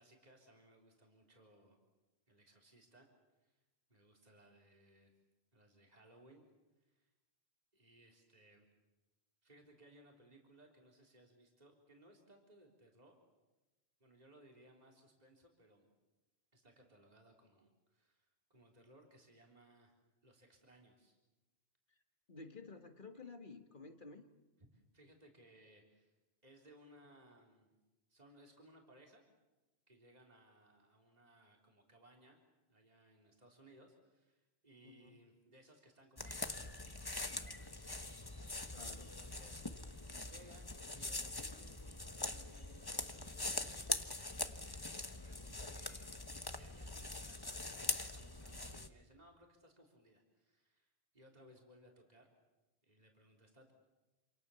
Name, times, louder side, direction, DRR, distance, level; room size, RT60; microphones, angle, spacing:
voice 1, 0.0-1.8 2.3-3.1 3.4-3.5 3.9-5.1 5.5-6.5 6.8-7.1 7.7-8.7 9.4-13.2 14.0-15.8 16.5-19.9 20.2-21.2 24.6-26.1 26.4-27.7 28.1-29.2 29.9-32.4 32.7-38.0 39.0-41.8 42.1-43.7 44.5-52.3 52.8-53.7, right 1 dB, 40° right, 0 dB, 3.7 m, -64 dB
voice 2, 22.3-24.3 34.8-35.2 38.7-39.1, left 3 dB, 50° left, 6 dB, 2.0 m, -53 dB
sound 1, 36.2-48.9, left 2 dB, 20° left, 1.2 m, -43 dB
27.5 x 27.5 x 7.0 m, 1.1 s
omnidirectional pair, 1.1 m